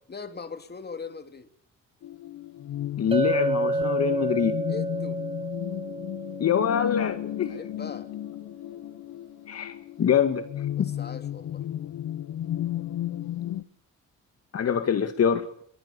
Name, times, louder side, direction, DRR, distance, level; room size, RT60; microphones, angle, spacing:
voice 1, 0.1-1.5 4.7-5.2 7.5-8.1 10.8-11.6, left 5 dB, 35° left, 8 dB, 3.0 m, -40 dB
sound 1, 2.0-13.6, left 12 dB, 70° left, 1.1 m, -34 dB
voice 2, 3.0-4.6 6.4-7.6 9.5-10.9 14.5-15.5, left 8 dB, 55° left, 8 dB, 2.1 m, -25 dB
Chink clink, 3.1-7.3, right 2 dB, 20° right, 1.3 m, -30 dB
25.0 x 23.0 x 7.0 m, 0.67 s
cardioid pair, 90°, 30 cm